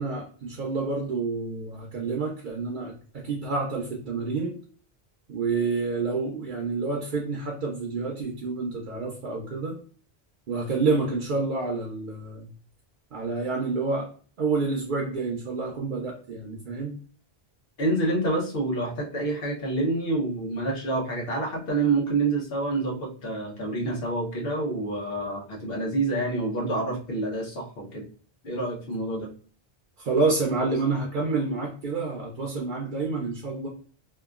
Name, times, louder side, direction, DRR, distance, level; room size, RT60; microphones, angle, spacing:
voice 1, 0.0-4.6 5.3-9.8 10.5-12.5 13.1-14.1 14.4-17.0 30.0-33.7, right 3 dB, 55° right, 0 dB, 0.7 m, -28 dB
voice 2, 17.8-28.1 28.4-29.3, right 2 dB, 65° left, -1 dB, 1.0 m, -27 dB
2.9 x 2.2 x 2.3 m, 0.43 s
omnidirectional pair, 1.1 m